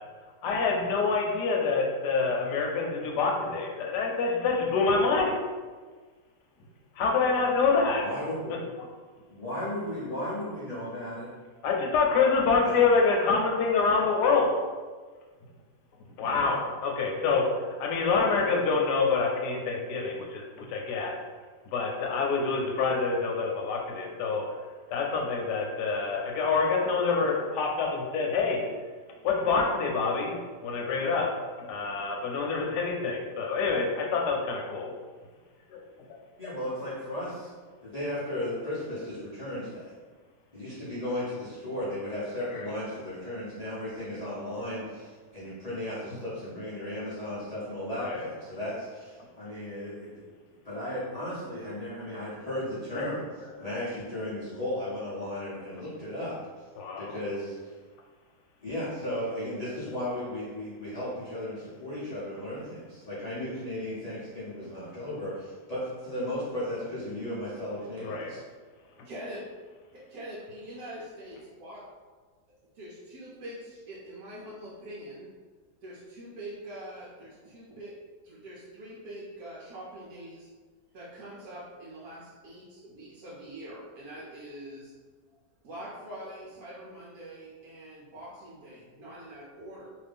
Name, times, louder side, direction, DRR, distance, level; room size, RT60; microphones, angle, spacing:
voice 1, 0.4-5.3 6.9-8.0 8.8-8.9 11.6-14.5 16.2-21.1 21.7-24.4 24.9-28.6 29.2-30.4 30.6-31.3 31.6-34.9 35.7-35.8 36.4-36.5 42.5-42.7 47.9-48.2 52.9-53.2 56.8-57.1 68.0-68.3, left 4 dB, 80° left, 0 dB, 1.1 m, -26 dB
voice 2, 8.0-8.5 9.3-11.3 12.6-12.7 16.2-16.4 34.8-34.9 36.4-37.5 37.8-39.9 40.5-50.1 50.6-53.2 53.6-56.4 57.0-57.6 58.6-68.4, left 1 dB, 55° left, -10 dB, 0.4 m, -35 dB
voice 3, 69.0-69.4 69.9-71.9 72.7-75.3 75.8-77.9 78.2-80.5 80.9-84.9 85.6-89.9, right 1 dB, 70° right, -7 dB, 1.0 m, -44 dB
2.8 x 2.5 x 3.4 m, 1.4 s
omnidirectional pair, 1.9 m